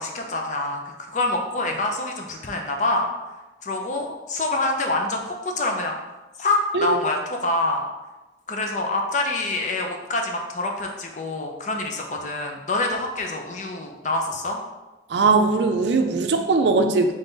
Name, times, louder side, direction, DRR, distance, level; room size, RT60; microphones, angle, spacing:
voice 1, 0.0-3.1 3.6-5.9 6.4-7.8 8.5-14.6, left 2 dB, 45° left, 2 dB, 0.6 m, -26 dB
voice 2, 15.1-17.1, right 3 dB, 75° right, 6 dB, 0.4 m, -20 dB
3.7 x 3.4 x 3.9 m, 1.1 s
head